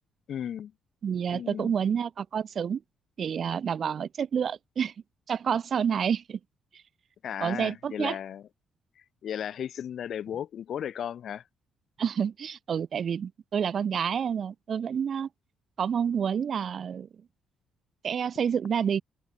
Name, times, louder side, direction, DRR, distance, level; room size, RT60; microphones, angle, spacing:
voice 1, 0.3-0.7 1.3-1.7 7.2-8.5 9.2-11.4, left 9 dB, 65° left, 5.8 m, -35 dB
voice 2, 1.0-2.8 3.2-4.9 5.3-6.4 7.4-8.2 12.0-15.3 15.8-17.1 18.0-19.0, right 7 dB, 55° right, 7.0 m, -28 dB
open air
cardioid pair, 90°, 0 cm